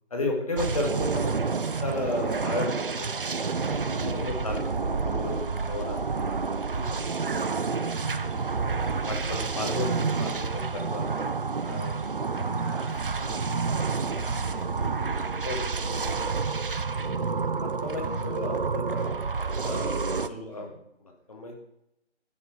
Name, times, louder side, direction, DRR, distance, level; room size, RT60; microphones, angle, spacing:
voice 1, 0.1-3.1 3.7-7.4 8.6-11.0 11.6-12.0 15.4-15.7 16.0-16.2 17.6-19.2 19.6-20.7 21.3-21.5, left 2 dB, 30° left, 2 dB, 1.4 m, -34 dB
sound 1, 0.6-20.3, right 4 dB, 50° right, 0.5 m, -29 dB
voice 2, 8.0-9.0 11.6-16.0 17.0-17.5 18.0-18.6 19.7-20.8, right 1 dB, 10° right, -9 dB, 2.5 m, -43 dB
9.4 x 6.0 x 4.8 m, 0.80 s
figure-of-eight pair, 165°, 36 cm